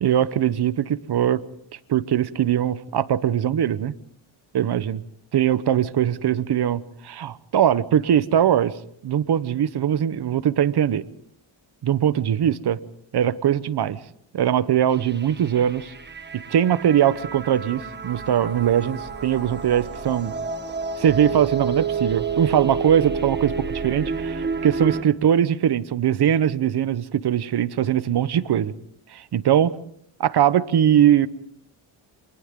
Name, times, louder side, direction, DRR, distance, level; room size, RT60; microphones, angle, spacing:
voice 1, 0.0-1.4 1.9-3.9 4.5-5.0 5.3-8.7 9.0-11.1 11.8-12.8 13.1-14.0 14.3-15.9 16.3-20.3 21.0-28.7 29.1-29.8 30.2-31.3, right 10 dB, 55° right, 1.1 m, -21 dB
sound 1, 14.9-25.0, right 5 dB, 20° right, 1.5 m, -30 dB
28.5 x 24.5 x 3.8 m
cardioid pair, 105°, 49 cm